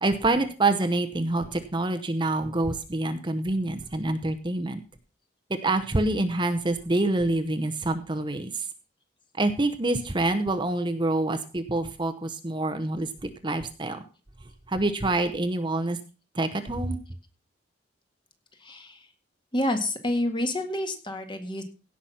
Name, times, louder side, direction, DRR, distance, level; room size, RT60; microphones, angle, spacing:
voice 1, 0.0-4.8 5.5-8.7 9.3-14.0 14.7-16.0 16.3-17.0, right 2 dB, 25° right, 9 dB, 0.9 m, -26 dB
voice 2, 18.6-19.0 19.5-21.6, left 1 dB, 25° left, 6 dB, 1.9 m, -28 dB
16.5 x 5.9 x 5.8 m, 0.34 s
head